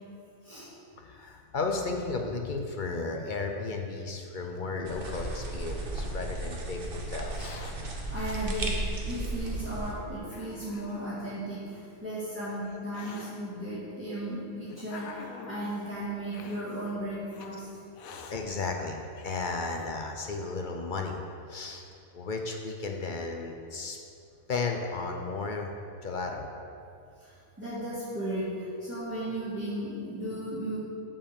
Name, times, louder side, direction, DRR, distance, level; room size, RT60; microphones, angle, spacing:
voice 1, 1.0-7.6 18.3-21.2 21.5-21.9 22.1-24.0 24.5-25.7 26.0-26.5, left 3 dB, 50° left, 2 dB, 0.6 m, -34 dB
Hiss, 4.6-6.2 7.1-7.7 8.7-8.8 9.6-9.7 10.3-11.3 12.1-13.3 14.2-15.7 16.3-16.6 17.3-17.5 17.9-18.4 18.9-19.0 19.1-19.9, left 5 dB, 80° left, 1.2 m, -48 dB
sound 1, 4.8-9.9, right 2 dB, 45° right, 1.1 m, -34 dB
voice 2, 8.1-17.7 27.2-30.8, right 1 dB, 10° right, -13 dB, 2.1 m, -35 dB
7.4 x 5.2 x 6.9 m, 2.5 s
omnidirectional pair, 1.4 m